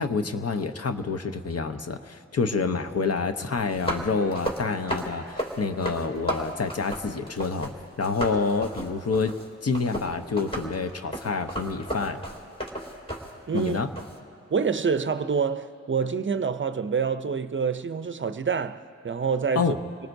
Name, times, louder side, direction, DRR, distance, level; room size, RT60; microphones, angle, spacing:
voice 1, 0.0-7.7 8.0-9.4 9.6-12.2 13.5-13.9 19.5-19.8, left 4 dB, 55° left, 0.8 m, -27 dB
sound 1, 3.6-7.7 8.0-14.2, equal, 20° left, 2.7 m, -33 dB
voice 2, 13.5-13.8 14.5-19.8, right 6 dB, 40° right, 0.5 m, -27 dB
27.5 x 19.0 x 2.7 m
cardioid pair, 55°, 30 cm